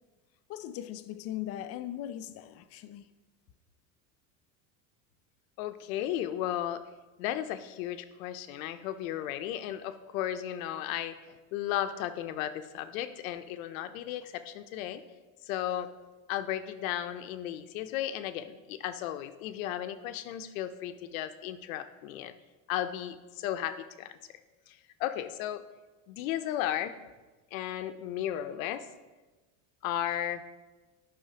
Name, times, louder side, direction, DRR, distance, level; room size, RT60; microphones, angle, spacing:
voice 1, 0.5-3.1, left 12 dB, 40° left, 0.4 m, -39 dB
voice 2, 5.6-6.8 7.2-11.1 11.5-15.0 15.4-15.9 16.3-22.3 22.7-24.2 24.7-25.6 26.1-26.9 27.5-28.9 29.8-30.4, left 11 dB, 85° left, 0.7 m, -34 dB
11.0 x 5.6 x 2.9 m
supercardioid pair, 140°, 40 cm